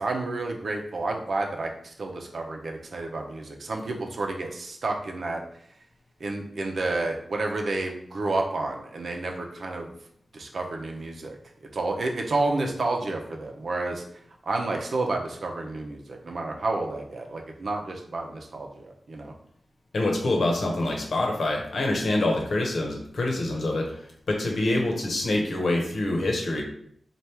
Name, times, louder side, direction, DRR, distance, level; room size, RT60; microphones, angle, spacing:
voice 1, 0.0-5.4 6.2-9.9 10.3-11.4 11.7-14.0 14.5-19.3, right 2 dB, 70° right, 2 dB, 0.7 m, -30 dB
voice 2, 19.9-26.6, left 2 dB, 75° left, 0 dB, 1.0 m, -26 dB
3.4 x 2.5 x 4.4 m, 0.67 s
wide cardioid pair, 85°, 0 cm